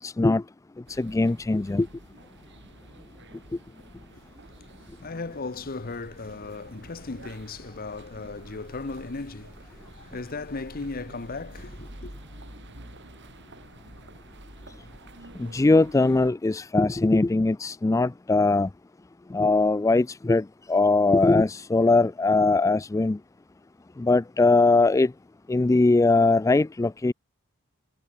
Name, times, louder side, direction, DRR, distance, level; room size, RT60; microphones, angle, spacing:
voice 1, 0.0-0.4 0.9-1.9 15.4-18.7 19.3-23.2 24.0-25.1 25.5-27.1, left 3 dB, 15° left, 0.3 m, -21 dB
sound 1, 0.9-16.3, right 1 dB, 60° right, 7.9 m, -48 dB
voice 2, 5.0-12.1, left 3 dB, 45° left, 1.0 m, -36 dB
head